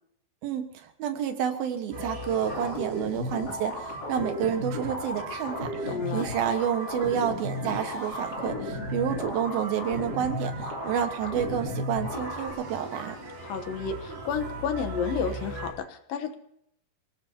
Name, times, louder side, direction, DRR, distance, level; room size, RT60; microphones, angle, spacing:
voice 1, 0.4-13.2, right 8 dB, 80° right, 6 dB, 3.3 m, -29 dB
sound 1, 1.9-15.7, right 1 dB, 65° right, 6.1 m, -41 dB
sound 2, 2.5-12.5, left 1 dB, 25° left, 3.7 m, -35 dB
voice 2, 5.9-6.2 13.4-16.3, left 6 dB, 75° left, 8 dB, 2.8 m, -31 dB
27.5 x 18.0 x 2.9 m, 0.74 s
omnidirectional pair, 4.2 m